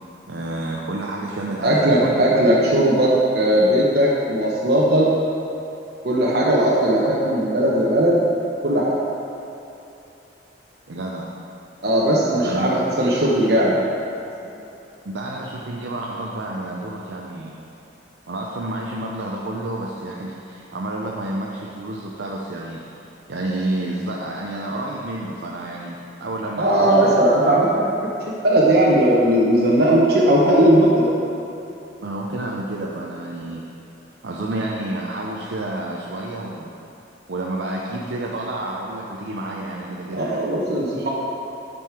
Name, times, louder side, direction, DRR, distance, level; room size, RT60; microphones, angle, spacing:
voice 1, 0.3-2.5 10.9-11.3 12.4-12.7 13.0-13.2 14.5-14.7 15.0-17.6 18.3-27.3 32.0-33.7 34.2-36.7 37.3-40.4, right 1 dB, 80° right, -2 dB, 0.7 m, -30 dB
voice 2, 1.6-5.1 6.0-8.3 8.6-9.0 11.8-13.8 26.6-28.1 28.4-31.1 40.1-41.1, right 1 dB, 60° right, -5 dB, 1.0 m, -18 dB
9.4 x 5.3 x 4.5 m, 2.9 s
head